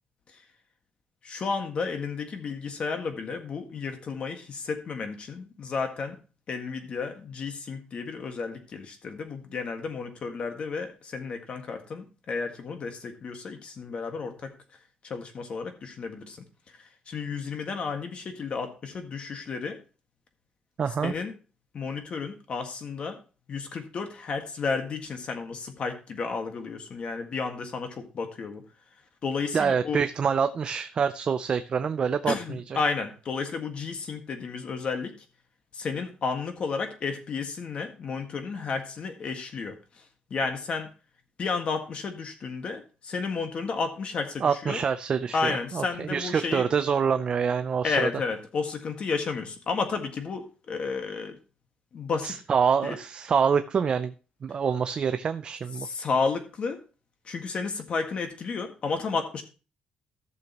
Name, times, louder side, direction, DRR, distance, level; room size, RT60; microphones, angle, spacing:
voice 1, 1.2-6.2 6.5-14.5 15.0-16.5 17.1-19.8 21.0-21.3 21.7-23.2 23.5-28.6 29.2-30.0 32.2-35.2 35.7-40.0 40.3-40.9 41.4-44.8 45.3-46.7 47.8-51.4 51.9-52.4 52.8-53.0 55.8-56.8 57.2-59.4, left 4 dB, 45° left, 6 dB, 1.7 m, -32 dB
voice 2, 20.8-21.1 29.5-32.8 44.4-48.1 52.2-54.1 54.4-55.9, right 6 dB, 35° right, 10 dB, 0.4 m, -26 dB
15.0 x 6.7 x 3.0 m, 0.34 s
cardioid pair, 145°, 3 cm